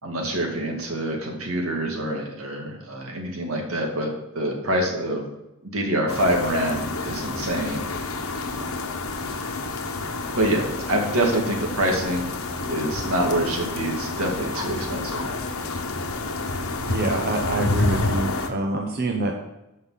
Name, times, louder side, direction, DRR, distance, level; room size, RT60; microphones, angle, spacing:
voice 1, 0.0-5.3 5.6-7.8 8.6-8.7 10.3-12.3 12.6-15.3, right 1 dB, 85° right, 1 dB, 2.2 m, -26 dB
sound 1, 6.1-18.5, left 3 dB, 90° left, 1.1 m, -29 dB
voice 2, 16.9-19.3, right 2 dB, 50° right, 2 dB, 0.9 m, -26 dB
13.5 x 5.5 x 4.1 m, 0.94 s
head